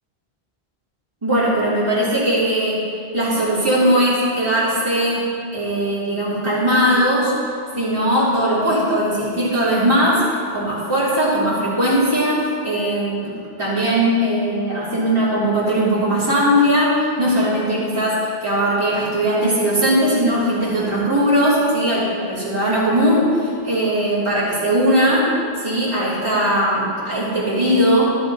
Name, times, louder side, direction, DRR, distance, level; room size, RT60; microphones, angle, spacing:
voice 1, 1.2-2.8 3.1-5.2 5.5-7.3 7.7-25.3 25.6-28.1, equal, 30° right, -10 dB, 3.0 m, -19 dB
13.5 x 12.0 x 2.8 m, 2.3 s
omnidirectional pair, 1.1 m